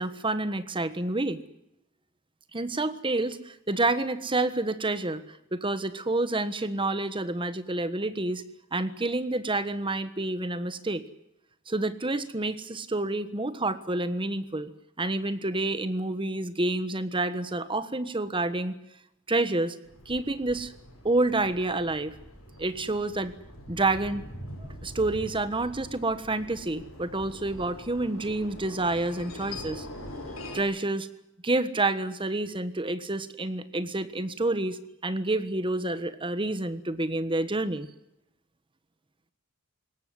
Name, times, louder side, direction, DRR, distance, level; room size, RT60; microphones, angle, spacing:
voice 1, 0.0-1.4 2.5-8.4 8.7-11.0 11.7-14.7 15.0-18.8 19.3-19.8 20.0-20.7 21.0-22.2 22.6-23.3 23.7-24.3 24.8-29.9 30.5-31.1 31.4-37.9, right 2 dB, 25° right, 12 dB, 1.4 m, -28 dB
sound 1, 19.8-30.6, left 1 dB, 85° left, 7.3 m, -43 dB
22.0 x 19.0 x 9.6 m, 0.86 s
head